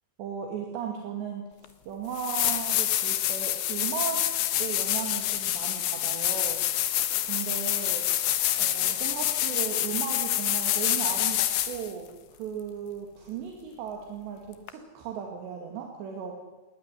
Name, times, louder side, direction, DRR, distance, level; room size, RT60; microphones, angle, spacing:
voice 1, 0.2-4.2 4.6-6.6 7.2-8.0 8.5-12.1 12.4-16.4, right 7 dB, 65° right, 1 dB, 4.2 m, -36 dB
sound 1, 1.6-1.7 2.1-11.9 14.7-14.8, left 13 dB, 70° left, 3.1 m, -27 dB
20.5 x 19.0 x 9.8 m, 1.1 s
omnidirectional pair, 5.5 m